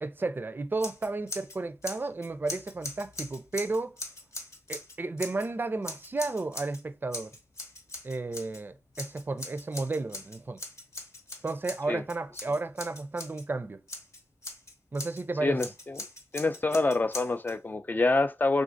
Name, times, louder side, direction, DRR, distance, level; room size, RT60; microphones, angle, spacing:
voice 1, 0.0-4.0 4.7-7.3 8.0-10.6 11.4-13.8 14.9-15.6, right 3 dB, 40° right, 0.4 m, -33 dB
Scissors, 0.8-1.6 1.8-5.5 5.8-6.8 7.1-8.6 8.9-13.4 13.9-15.2 15.6-17.5, left 2 dB, 65° left, 0.9 m, -41 dB
voice 2, 15.4-16.1 16.3-18.6, left 2 dB, 35° left, 0.3 m, -26 dB
3.6 x 2.5 x 2.5 m
wide cardioid pair, 85°, 5 cm